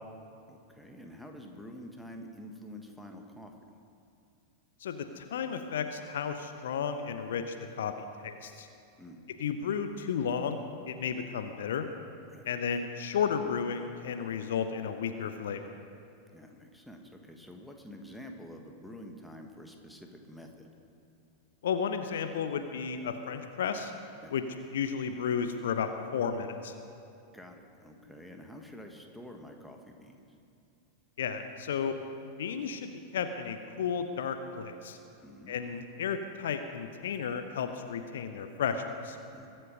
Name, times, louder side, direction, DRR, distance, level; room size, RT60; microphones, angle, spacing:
voice 1, 0.5-3.5 9.0-9.2 12.3-12.5 16.3-20.7 24.2-24.3 27.3-30.2 35.2-35.6 39.3-39.5, equal, ahead, 3 dB, 1.5 m, -48 dB
voice 2, 4.8-8.7 9.4-10.6 10.9-11.9 12.5-15.6 21.6-23.9 24.3-24.4 24.7-26.7 31.2-31.9 32.4-35.0 35.5-39.2, left 7 dB, 60° left, 8 dB, 0.8 m, -33 dB
22.0 x 7.9 x 5.4 m, 2.7 s
figure-of-eight pair, 90°, 0 cm